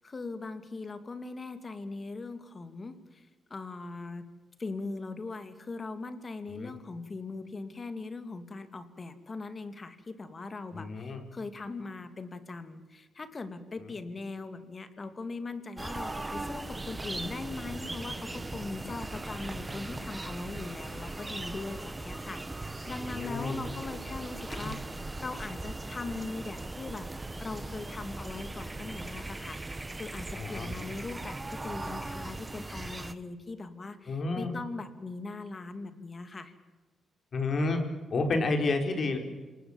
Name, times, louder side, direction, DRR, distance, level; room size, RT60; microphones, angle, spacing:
voice 1, 0.0-4.3 4.6-27.1 27.4-36.5, left 3 dB, 35° left, 10 dB, 2.7 m, -40 dB
voice 2, 10.7-11.2 23.0-23.6 24.6-24.7 30.3-30.7 34.1-34.6 37.3-37.8 38.1-39.2, left 3 dB, 50° left, 5 dB, 4.9 m, -30 dB
sound 1, 15.8-33.1, right 2 dB, 20° right, 1.4 m, -39 dB
27.5 x 19.5 x 7.4 m, 1.3 s
cardioid pair, 85°, 0 cm